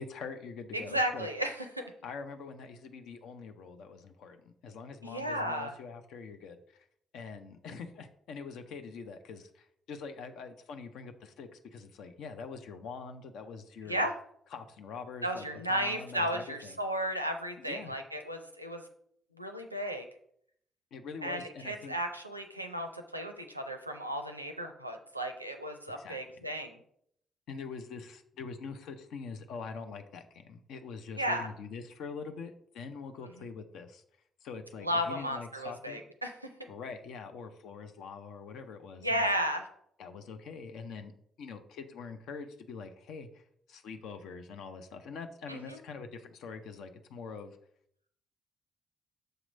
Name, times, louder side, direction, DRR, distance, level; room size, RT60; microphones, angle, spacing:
voice 1, 0.0-1.3 2.0-6.8 7.1-14.1 14.5-16.8 17.6-17.9 20.9-21.9 26.0-26.2 27.5-34.0 34.4-36.0 36.7-39.5 40.0-41.1 41.4-43.3 43.7-47.5, left 5 dB, 60° left, 7 dB, 0.5 m, -44 dB
voice 2, 0.7-1.8 5.0-5.7 13.8-14.1 15.2-18.9 19.4-20.0 21.2-26.7 31.2-31.5 34.8-36.5 39.0-39.7 45.5-45.8, equal, 90° right, 5 dB, 0.4 m, -34 dB
6.5 x 3.0 x 5.0 m, 0.70 s
figure-of-eight pair, 40°, 0 cm